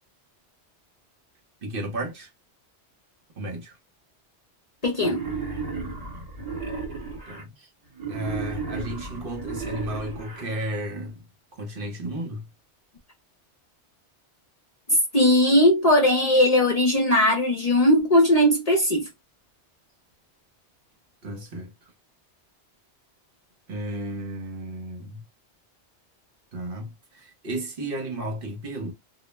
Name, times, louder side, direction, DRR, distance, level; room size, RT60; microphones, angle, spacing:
voice 1, 1.6-2.3 3.4-3.8 7.3-7.7 8.1-11.2 11.5-12.5 21.2-21.7 23.7-25.2 26.5-28.9, right 1 dB, 55° right, 0.9 m, -33 dB
voice 2, 4.8-5.3 14.9-19.1, left 1 dB, 45° left, 0.6 m, -19 dB
Wild animals, 4.9-7.4 7.9-10.4, right 4 dB, 40° right, 1.1 m, -33 dB
2.2 x 2.1 x 3.1 m
omnidirectional pair, 1.2 m